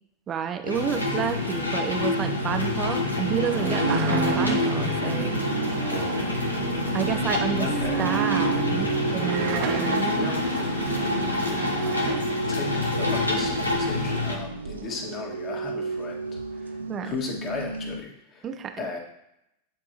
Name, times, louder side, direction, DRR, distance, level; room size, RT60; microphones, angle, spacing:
voice 1, 0.3-5.4 6.9-7.7 8.0-10.7 16.9-17.1 18.4-18.8, right 8 dB, 30° right, 8 dB, 0.5 m, -30 dB
sound 1, 0.7-14.4, left 2 dB, 85° left, 1.0 m, -27 dB
sound 2, 2.4-18.0, right 3 dB, 75° right, 0.5 m, -35 dB
sound 3, 3.3-12.2, right 5 dB, 50° right, 1.0 m, -30 dB
voice 2, 7.6-8.0 10.1-10.7 12.5-16.2 16.5-18.5 18.8-19.0, left 4 dB, 35° left, 0 dB, 1.8 m, -35 dB
9.0 x 4.8 x 2.9 m, 0.81 s
figure-of-eight pair, 85°, 0 cm